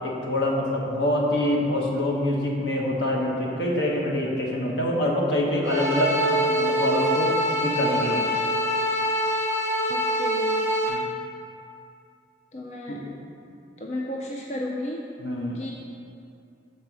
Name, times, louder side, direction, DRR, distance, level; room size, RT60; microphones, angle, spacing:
voice 1, 0.0-8.4 10.9-11.1 12.9-13.0 15.2-15.6, left 1 dB, 70° left, -2 dB, 1.1 m, -25 dB
sound 1, 5.6-10.9, equal, 15° left, 1.4 m, -24 dB
voice 2, 9.9-10.6 12.5-13.0 13.8-15.1 15.5-15.7, left 1 dB, 35° left, -1 dB, 0.4 m, -33 dB
6.8 x 4.1 x 6.1 m, 2.5 s
head